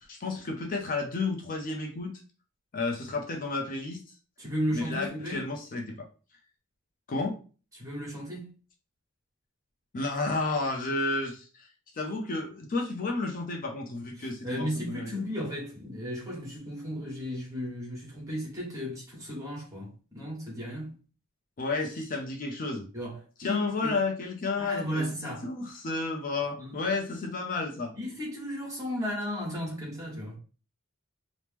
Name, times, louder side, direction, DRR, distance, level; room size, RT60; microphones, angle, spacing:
voice 1, 0.1-2.2 2.7-4.0 4.7-6.1 7.1-7.4 9.9-11.7 11.9-15.1 21.6-22.9 23.4-27.9, left 3 dB, 40° left, 0.4 m, -31 dB
voice 2, 4.4-5.5 7.7-8.5 14.2-20.9 22.9-24.0 24.6-25.5 26.6-26.8 27.9-30.4, equal, 15° right, 1.2 m, -35 dB
2.9 x 2.0 x 3.3 m
head